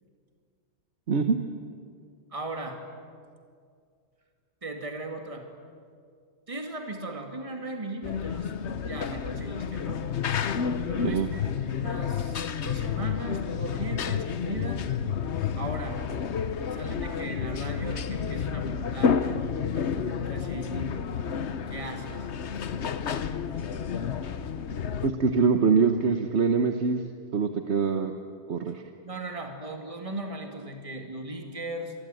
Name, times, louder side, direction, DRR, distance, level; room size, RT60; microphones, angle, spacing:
voice 1, 2.3-2.8 4.6-5.5 6.5-8.5 8.8-10.0 10.8-11.4 11.7-14.8 15.6-16.0 16.7-21.1 21.7-22.3 29.0-31.9, right 1 dB, 30° right, 3 dB, 2.5 m, -37 dB
sound 1, 8.0-25.1, left 7 dB, 70° left, 1.2 m, -30 dB
voice 2, 25.0-27.0 27.3-28.1 28.5-28.8, right 5 dB, 70° right, 6 dB, 1.4 m, -24 dB
27.5 x 21.5 x 9.1 m, 2.2 s
omnidirectional pair, 1.2 m